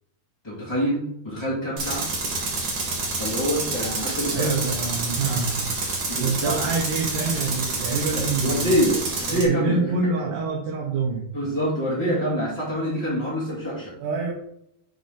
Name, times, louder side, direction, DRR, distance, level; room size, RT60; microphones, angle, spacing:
voice 1, 0.4-2.1 3.2-4.5 6.1-6.6 8.1-9.9 11.3-13.9, equal, 10° left, -9 dB, 1.2 m, -26 dB
Tools, 1.8-9.5, right 3 dB, 50° right, 1.5 m, -28 dB
voice 2, 4.3-5.7 6.2-8.7 9.3-11.3 14.0-14.3, right 4 dB, 85° right, -2 dB, 3.2 m, -26 dB
9.4 x 3.8 x 3.8 m, 0.76 s
omnidirectional pair, 4.6 m